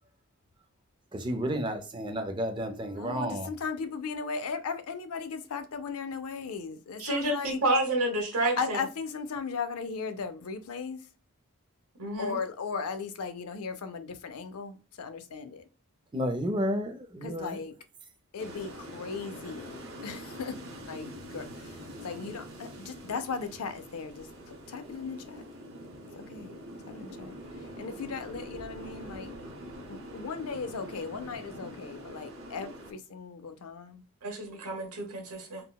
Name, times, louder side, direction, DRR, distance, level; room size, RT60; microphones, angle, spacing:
voice 1, 1.1-3.5 16.1-17.6, equal, 20° right, 0.4 m, -31 dB
voice 2, 2.9-7.6 8.3-11.1 12.2-15.7 17.2-17.7 18.3-20.6 20.9-25.4 26.1-26.6 26.9-29.4 29.9-34.0, left 5 dB, 80° left, 0.5 m, -37 dB
voice 3, 7.0-8.8 12.0-12.4 34.2-35.6, right 2 dB, 85° right, 1.0 m, -29 dB
sound 1, 18.4-32.9, equal, 60° right, 0.7 m, -44 dB
3.7 x 2.0 x 2.3 m
head